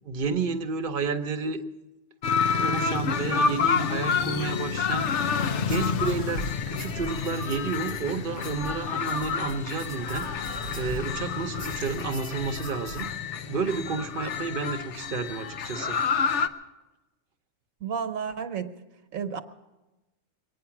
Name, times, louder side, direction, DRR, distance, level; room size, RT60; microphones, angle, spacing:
voice 1, 0.1-1.6 2.6-5.4 5.7-13.1 13.5-16.0, right 4 dB, 45° right, 7 dB, 0.9 m, -31 dB
sound 1, 2.2-16.5, left 5 dB, 65° left, 1.0 m, -29 dB
sound 2, 5.6-11.2 11.6-13.1, right 3 dB, 90° left, 6.5 m, -42 dB
voice 2, 17.8-18.7 19.1-19.4, right 7 dB, 80° right, 8 dB, 1.3 m, -31 dB
23.5 x 9.4 x 5.9 m, 1.1 s
omnidirectional pair, 1.4 m